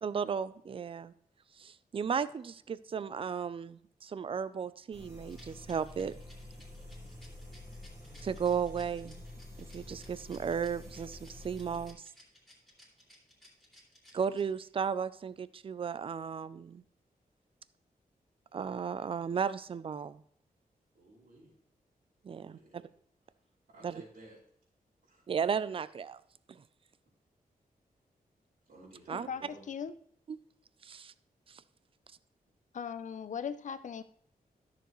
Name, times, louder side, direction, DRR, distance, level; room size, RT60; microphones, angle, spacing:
voice 1, 0.0-1.1 1.6-6.1 8.2-9.2 9.6-12.1 14.1-16.8 18.5-20.2 22.2-22.6 23.8-23.9 25.3-26.2 26.5-26.6 29.1-29.3 30.3-30.4 30.8-31.1 31.5-31.6, right 7 dB, 35° right, 16 dB, 0.3 m, -35 dB
sound 1, 4.9-11.9, left 1 dB, 20° right, 1.8 m, -48 dB
Rattle, 5.3-14.8, left 1 dB, ahead, 2.4 m, -59 dB
voice 2, 20.9-21.5 22.4-22.9 23.7-24.4 25.0-25.2 28.7-29.7, right 1 dB, 90° right, -11 dB, 3.9 m, -54 dB
voice 3, 32.7-34.0, left 7 dB, 55° left, 13 dB, 0.5 m, -38 dB
13.0 x 6.8 x 3.1 m, 0.64 s
wide cardioid pair, 170°, 16 cm